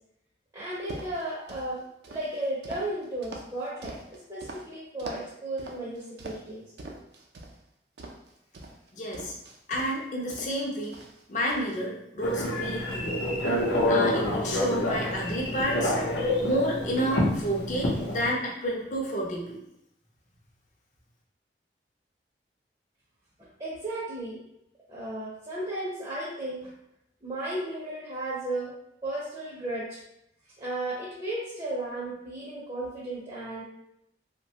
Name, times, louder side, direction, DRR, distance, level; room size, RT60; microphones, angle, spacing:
voice 1, 0.5-6.6 23.4-24.4 24.9-26.7 27.2-28.7 29.0-30.0 30.6-33.6, right 1 dB, 25° right, -7 dB, 0.5 m, -34 dB
sound 1, 0.7-1.7 2.0-4.6 5.0-5.3 5.6-6.5 6.8-7.6 8.0-10.0 10.3-11.2 11.5-11.8, right 2 dB, 75° right, 0.4 m, -43 dB
voice 2, 8.9-9.3 9.7-10.9 11.3-13.2 13.8-16.0 16.4-19.6, equal, 45° left, -2 dB, 0.5 m, -30 dB
Telephone, 12.2-18.3, left 1 dB, 85° left, 0.7 m, -27 dB
2.9 x 2.2 x 2.7 m, 0.79 s
head